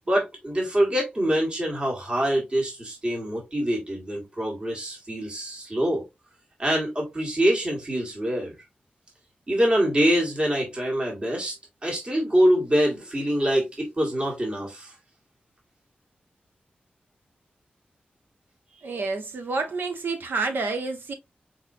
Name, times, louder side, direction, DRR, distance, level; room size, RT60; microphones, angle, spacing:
voice 1, 0.1-6.0 6.6-8.5 9.5-11.6 11.8-14.9, equal, 30° right, 1.8 m, -25 dB
voice 2, 18.8-21.1, right 3 dB, 80° right, 1.2 m, -29 dB
4.5 x 4.0 x 2.7 m
wide cardioid pair, 140°, 3 cm